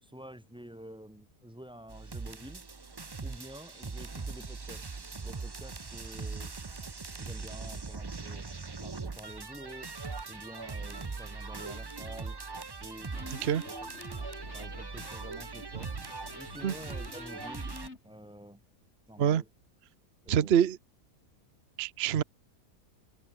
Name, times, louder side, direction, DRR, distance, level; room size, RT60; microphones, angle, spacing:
voice 1, 0.0-2.7 3.2-4.8 5.2-6.8 7.2-8.5 8.8-9.9 10.3-12.4 12.8-13.7 14.5-15.9 16.4-17.7 18.0-18.6 19.1-19.5 20.2-20.7, equal, 5° right, 5.8 m, -49 dB
sound 1, 1.9-17.9, right 4 dB, 25° right, 0.5 m, -41 dB
Electric guitar, 13.0-18.0, left 3 dB, 50° left, 3.3 m, -49 dB
voice 2, 20.3-20.8 21.8-22.2, right 9 dB, 50° right, 0.9 m, -25 dB
omnidirectional pair, 1.5 m